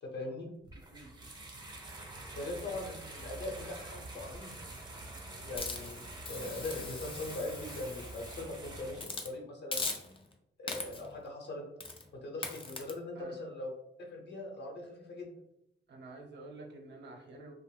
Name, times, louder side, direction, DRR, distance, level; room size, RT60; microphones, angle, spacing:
voice 1, 0.0-0.5 2.3-4.7 5.4-6.0 6.3-9.8 10.6-11.6 12.1-13.7 14.1-15.3, left 2 dB, 60° left, 0 dB, 0.9 m, -41 dB
sound 1, 0.7-9.0, right 2 dB, 20° right, 0.6 m, -46 dB
Hiss, 5.6-8.4 9.0-9.3 9.7-10.3 10.7-11.1 11.8-12.0 12.4-12.9, left 3 dB, 25° left, 0.4 m, -40 dB
voice 2, 15.9-17.5, right 2 dB, 60° right, 2 dB, 0.7 m, -49 dB
2.6 x 2.0 x 3.3 m, 0.80 s
cardioid pair, 110°, 20 cm